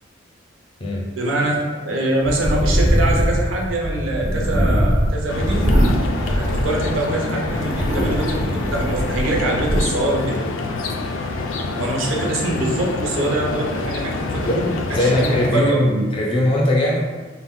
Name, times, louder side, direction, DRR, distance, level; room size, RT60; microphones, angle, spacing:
voice 1, 1.1-1.6 1.8-5.7 6.2-10.4 11.7-16.0, right 1 dB, 85° right, -2 dB, 0.6 m, -24 dB
sound 1, 2.2-7.0 7.4-9.8, equal, 35° right, 0.5 m, -21 dB
sound 2, 5.3-15.5, left 3 dB, 85° left, 0.3 m, -27 dB
voice 2, 14.9-17.0, left 1 dB, 30° left, -3 dB, 0.5 m, -19 dB
2.4 x 2.1 x 3.5 m, 1.3 s
head